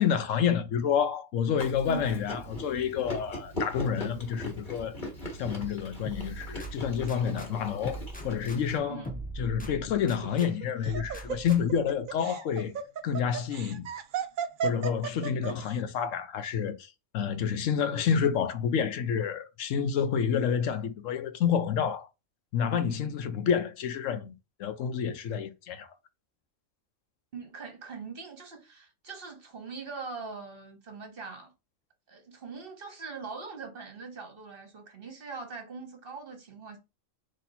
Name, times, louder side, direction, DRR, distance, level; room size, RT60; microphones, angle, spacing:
voice 1, 0.0-5.0 5.4-9.0 9.4-12.7 13.0-13.9 14.6-22.1 22.5-24.3 24.6-25.9, left 7 dB, 75° left, 1.0 m, -29 dB
Chewing mastication, 1.6-8.8, equal, 40° left, 1.9 m, -40 dB
sound 1, 6.1-7.5 7.8-10.5 10.9-11.9, right 1 dB, 10° left, 0.5 m, -42 dB
voice 2, 8.9-9.2 27.3-31.5 32.1-36.8, right 4 dB, 45° right, 1.3 m, -42 dB
Laughter, 10.2-15.7, right 8 dB, 60° right, 0.5 m, -34 dB
4.2 x 3.1 x 4.1 m
omnidirectional pair, 1.4 m